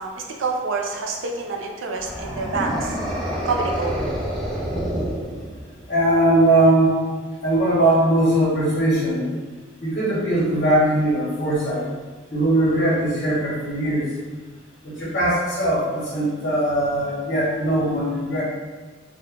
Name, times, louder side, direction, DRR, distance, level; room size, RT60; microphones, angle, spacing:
voice 1, 0.0-2.9 3.4-4.0 6.9-7.0, right 4 dB, 75° right, 1 dB, 0.5 m, -27 dB
sound 1, 1.9-5.8, equal, 5° left, 0.6 m, -27 dB
voice 2, 5.9-6.9 7.4-9.2 9.8-11.9 12.3-14.1 14.8-18.4, right 1 dB, 50° left, -8 dB, 1.0 m, -20 dB
2.8 x 2.1 x 3.5 m, 1.3 s
head